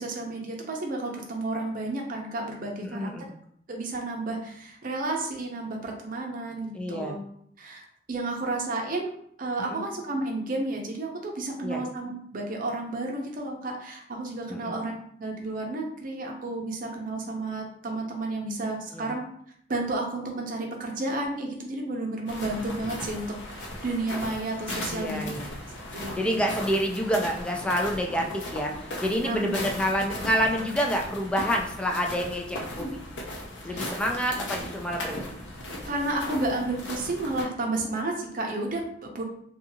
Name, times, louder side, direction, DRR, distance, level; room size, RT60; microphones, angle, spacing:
voice 1, 0.0-3.1 3.7-7.2 7.6-9.1 9.4-19.2 19.7-25.2 25.9-26.2 29.2-29.5 32.8-32.9 33.7-33.9 35.9-39.2, right 2 dB, 50° right, 1 dB, 0.6 m, -32 dB
voice 2, 2.8-3.3 6.7-7.2 9.6-9.8 11.6-11.8 14.5-14.8 18.9-19.1 24.9-25.5 26.2-32.9 33.6-35.4, equal, 5° left, 1 dB, 0.3 m, -28 dB
sound 1, 22.3-37.4, left 1 dB, 75° left, 0.6 m, -37 dB
2.7 x 2.4 x 2.7 m, 0.66 s
head